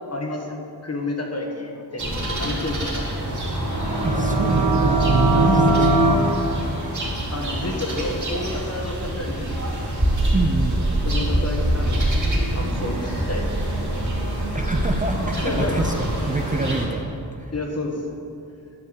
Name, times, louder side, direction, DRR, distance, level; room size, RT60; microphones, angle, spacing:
voice 1, 0.1-3.1 5.3-5.8 7.3-9.5 11.0-13.5 15.3-15.8 17.5-18.0, left 2 dB, 40° left, 1 dB, 1.4 m, -30 dB
sound 1, 2.0-16.9, right 1 dB, 45° right, 2.4 m, -25 dB
sound 2, 3.6-6.2, right 2 dB, 70° right, 1.1 m, -20 dB
voice 2, 4.0-5.9 10.3-10.8 14.5-17.5, right 2 dB, 20° right, 4 dB, 0.5 m, -26 dB
10.5 x 4.6 x 8.1 m, 2.5 s
wide cardioid pair, 100°, 40 cm